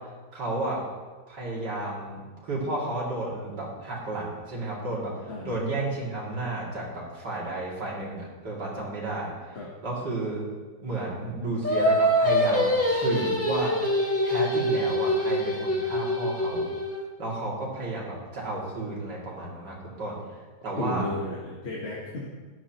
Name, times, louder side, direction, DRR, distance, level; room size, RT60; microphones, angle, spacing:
voice 1, 0.3-0.8 1.3-5.1 5.4-9.3 9.8-10.4 10.8-13.7 14.2-16.7 17.2-20.2 20.6-21.1, right 2 dB, 80° right, -4 dB, 3.1 m, -32 dB
voice 2, 5.3-5.6 9.5-9.7 20.8-22.3, left 2 dB, 40° left, -4 dB, 1.4 m, -33 dB
Singing, 11.6-17.0, equal, 10° left, 1.0 m, -24 dB
12.5 x 11.0 x 2.9 m, 1.3 s
omnidirectional pair, 1.8 m